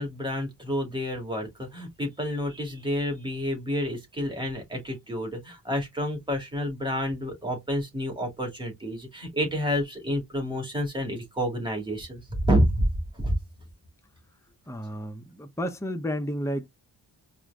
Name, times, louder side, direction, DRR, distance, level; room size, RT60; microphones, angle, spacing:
voice 1, 0.0-12.9 13.2-13.4, equal, 10° right, 2.4 m, -29 dB
voice 2, 14.7-16.7, equal, 5° left, 0.7 m, -32 dB
4.8 x 2.5 x 3.5 m
wide cardioid pair, 130°, 42 cm